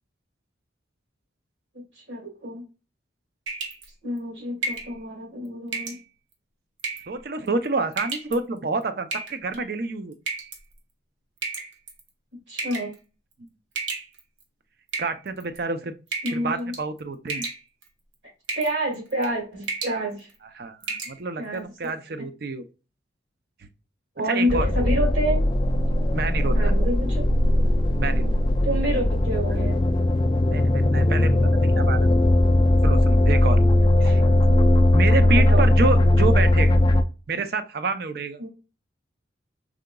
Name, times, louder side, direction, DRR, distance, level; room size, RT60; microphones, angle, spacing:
voice 1, 2.0-2.6 4.0-6.0 12.5-12.9 16.2-16.7 18.5-20.3 21.4-22.0 24.2-25.4 26.5-27.3 28.6-29.8 33.8-34.4 35.2-35.6 38.4-38.5, right 1 dB, 70° right, 2.0 m, -28 dB
sound 1, 3.5-3.9 4.6-4.9 5.7-6.0 6.8-7.2 7.9-8.4 9.1-9.6 10.3-10.6 11.4-12.0 12.6-12.9 13.8-14.4 14.9-15.6 16.1-16.5 16.7-17.0 17.3-17.9 18.5-18.8 19.1-19.3 19.6-20.0 20.3-20.4 20.8-21.2, right 4 dB, 85° right, 1.0 m, -32 dB
voice 2, 7.1-10.1 15.0-16.0 16.3-17.5 20.6-22.6 24.3-24.7 26.1-26.7 28.0-28.3 30.5-32.1 32.8-33.6 34.0-34.2 34.9-36.8 37.3-38.4, right 3 dB, 55° right, 0.5 m, -28 dB
sound 2, 24.5-37.0, left 1 dB, 25° left, 0.3 m, -19 dB
4.8 x 3.7 x 2.2 m
head